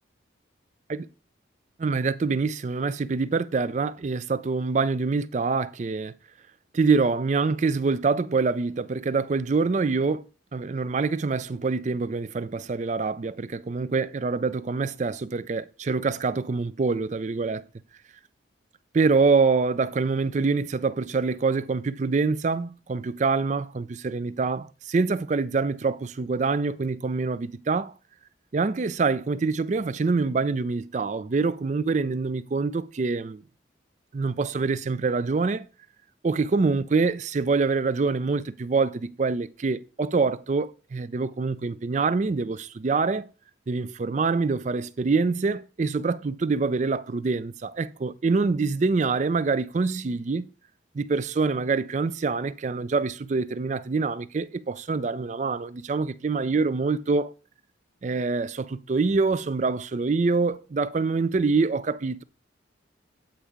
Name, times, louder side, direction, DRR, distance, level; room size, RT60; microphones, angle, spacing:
voice 1, 1.8-6.1 6.7-10.2 10.5-17.6 18.9-27.9 28.5-33.4 34.1-35.7 36.2-43.3 43.7-50.4 50.9-57.3 58.0-62.2, right 4 dB, 40° right, 0.4 m, -25 dB
8.7 x 4.5 x 5.0 m
head